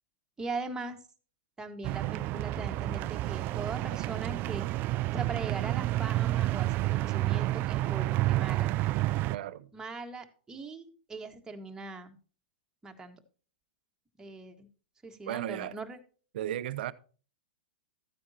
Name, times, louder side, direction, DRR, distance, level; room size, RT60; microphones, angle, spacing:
voice 1, 0.4-1.0 1.6-4.6 5.1-8.7 9.7-12.2 12.8-13.2 14.2-14.7 15.0-16.0, right 3 dB, 10° right, 1.6 m, -40 dB
sound 1, 1.8-9.4, right 16 dB, 35° right, 0.4 m, -30 dB
voice 2, 9.3-9.7 15.3-15.7 16.3-16.9, right 12 dB, 65° right, 0.7 m, -35 dB
14.0 x 9.5 x 2.9 m
hypercardioid pair, 120°, 6 cm